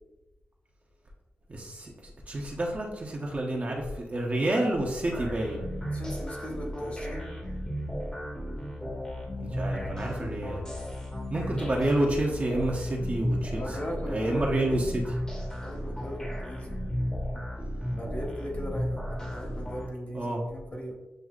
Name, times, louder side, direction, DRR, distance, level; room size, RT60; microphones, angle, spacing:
voice 1, 1.5-5.7 9.4-10.6 11.3-13.6 14.1-15.0 20.1-20.4, right 1 dB, 35° right, -1 dB, 0.9 m, -29 dB
sound 1, 5.1-19.9, equal, 15° left, 1.0 m, -34 dB
voice 2, 5.9-7.3 13.5-14.8 15.6-16.8 17.9-20.9, equal, 35° left, -1 dB, 1.2 m, -38 dB
7.6 x 2.7 x 2.4 m, 1.0 s
wide cardioid pair, 105°, 4 cm